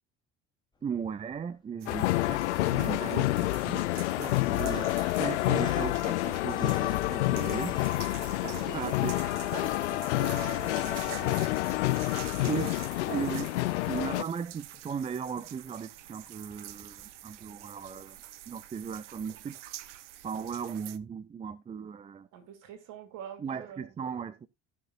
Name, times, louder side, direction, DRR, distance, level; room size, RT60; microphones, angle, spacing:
Sink (filling or washing), 0.8-1.7 2.0-18.2, left 3 dB, 10° left, 2.8 m, -53 dB
voice 1, 0.8-3.9 4.2-4.9 5.2-7.8 8.5-9.1 12.5-12.7 13.1-13.5 13.9-18.2 18.5-19.6 20.2-22.3 23.4-24.5, right 6 dB, 15° right, 0.5 m, -37 dB
sound 1, 1.8-21.0, right 14 dB, 75° right, 0.6 m, -47 dB
sound 2, 1.9-14.2, left 18 dB, 70° left, 0.5 m, -28 dB
voice 2, 8.3-9.2 9.5-11.4 13.0-13.2 22.3-23.9, right 9 dB, 55° right, 2.3 m, -44 dB
16.5 x 6.6 x 2.4 m
figure-of-eight pair, 60°, 36 cm